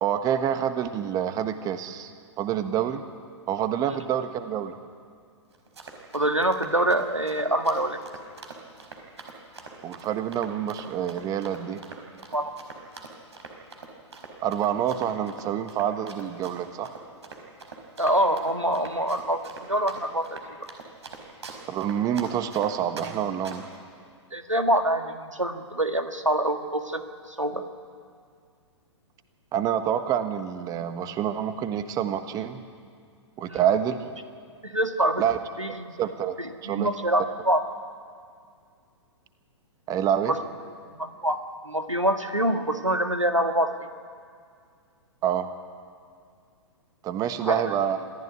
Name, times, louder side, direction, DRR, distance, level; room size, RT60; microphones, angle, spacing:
voice 1, 0.0-3.0 3.5-4.8 9.8-11.8 14.4-16.9 21.7-23.7 29.5-32.6 33.4-34.1 35.2-35.4 35.7-36.4 36.6-36.9 39.9-40.3 45.2-45.5 47.0-48.1, right 9 dB, 25° right, 10 dB, 1.3 m, -27 dB
Run, 5.5-23.1 23.4-23.8, right 4 dB, 65° right, 4.9 m, -43 dB
voice 2, 6.1-8.0 12.3-12.5 18.0-19.4 19.7-20.3 20.6-20.7 24.3-27.0 27.3-27.7 33.5-33.6 34.6-35.2 35.6-36.0 36.4-37.6 40.3-40.4 40.9-41.4 41.7-43.7 47.4-47.6, right 1 dB, 90° right, 7 dB, 1.9 m, -25 dB
26.0 x 15.5 x 9.7 m, 2.2 s
figure-of-eight pair, 110°, 16 cm